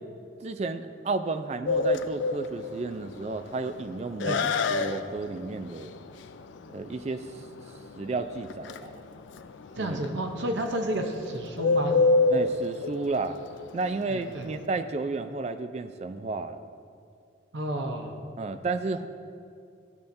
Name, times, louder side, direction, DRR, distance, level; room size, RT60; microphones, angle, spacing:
voice 1, 0.4-4.4 4.7-5.9 6.7-7.4 8.0-8.9 9.8-10.0 12.3-13.4 13.7-16.7 18.4-19.1, right 3 dB, 35° right, 10 dB, 0.3 m, -32 dB
Bird, 1.7-14.6, left 3 dB, 75° left, 0.3 m, -28 dB
voice 2, 9.8-11.9 14.1-14.5 17.5-18.2, right 1 dB, 70° right, 3 dB, 0.7 m, -31 dB
13.5 x 6.9 x 2.6 m, 2.4 s
head